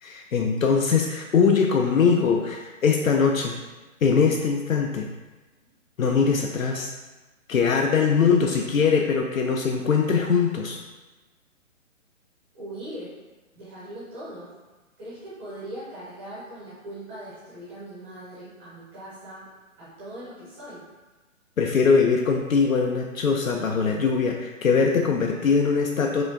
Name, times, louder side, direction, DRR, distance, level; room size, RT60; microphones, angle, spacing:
voice 1, 0.0-3.6 4.0-5.1 6.0-6.9 7.5-10.8 21.6-26.2, left 5 dB, 80° left, 2 dB, 0.5 m, -22 dB
voice 2, 12.5-13.1 13.5-14.5 15.0-19.5 19.8-20.8, right 1 dB, 10° right, -11 dB, 0.5 m, -40 dB
4.8 x 2.3 x 2.5 m, 1.2 s
figure-of-eight pair, 130°, 40 cm